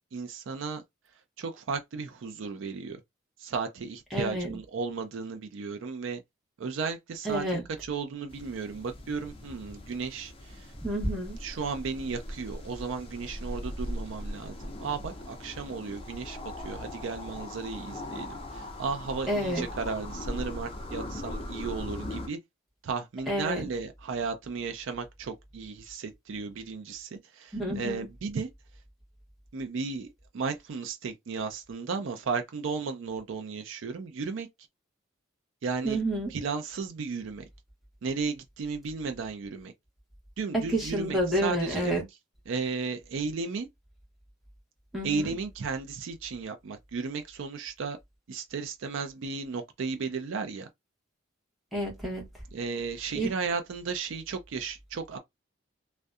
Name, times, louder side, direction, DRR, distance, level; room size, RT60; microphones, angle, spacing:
voice 1, 0.1-0.8 1.4-3.0 3.4-6.2 6.6-10.7 11.4-22.4 22.8-28.5 29.5-34.5 35.6-36.0 36.3-37.4 38.0-39.7 40.4-42.0 42.5-43.7 45.0-48.0 48.3-50.7 52.5-55.2, right 4 dB, 70° right, 0.4 m, -34 dB
voice 2, 4.1-4.6 7.2-7.6 10.8-11.4 19.3-19.7 23.3-23.7 27.5-28.0 35.8-36.3 40.5-42.0 44.9-45.3 51.7-52.3 53.1-53.3, right 1 dB, ahead, 0.9 m, -29 dB
sound 1, 8.3-22.3, left 1 dB, 25° left, 0.4 m, -40 dB
2.6 x 2.1 x 2.3 m
head